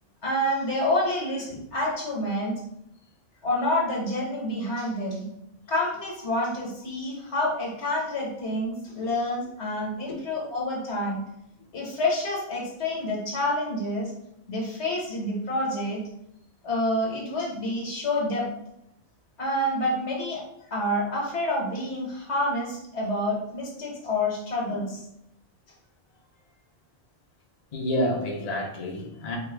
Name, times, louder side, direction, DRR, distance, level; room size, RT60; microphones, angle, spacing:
voice 1, 0.2-2.6 3.4-5.2 5.7-11.2 11.7-14.1 14.5-16.0 16.6-18.5 19.4-20.4 20.7-25.0, left 1 dB, 65° left, -2 dB, 1.3 m, -28 dB
voice 2, 27.7-29.4, left 1 dB, 40° left, -1 dB, 0.6 m, -29 dB
4.7 x 2.2 x 3.3 m, 0.80 s
omnidirectional pair, 1.2 m